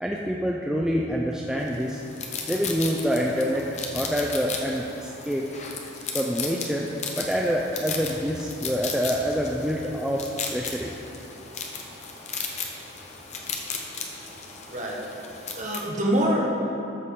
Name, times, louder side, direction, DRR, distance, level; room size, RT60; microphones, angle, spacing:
voice 1, 0.0-2.0 2.4-3.7 3.9-5.5 6.1-10.9, equal, 5° right, -2 dB, 0.3 m, -26 dB
sound 1, 1.7-15.8, left 5 dB, 35° left, 0.8 m, -36 dB
voice 2, 15.5-16.6, equal, 35° right, -2 dB, 1.3 m, -25 dB
13.0 x 6.8 x 3.7 m, 3.0 s
head